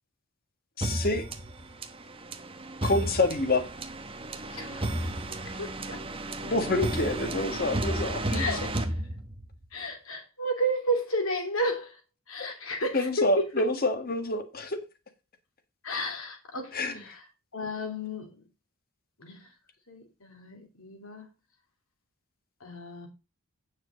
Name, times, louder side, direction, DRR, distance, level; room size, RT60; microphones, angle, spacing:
voice 1, 0.8-1.3 2.8-3.6 6.4-8.6 12.4-12.5 12.9-14.8 16.7-17.1, left 2 dB, 45° left, 1.7 m, -27 dB
sound 1, 0.8-9.6, right 1 dB, 25° right, 1.0 m, -33 dB
voice 2, 4.5-4.9 5.4-6.0 8.3-8.7 9.7-12.0 12.3-13.4 15.8-17.2 17.5-18.4 19.2-19.5 19.9-21.3 22.6-23.1, equal, 70° left, 3.2 m, -32 dB
9.1 x 6.5 x 5.1 m
head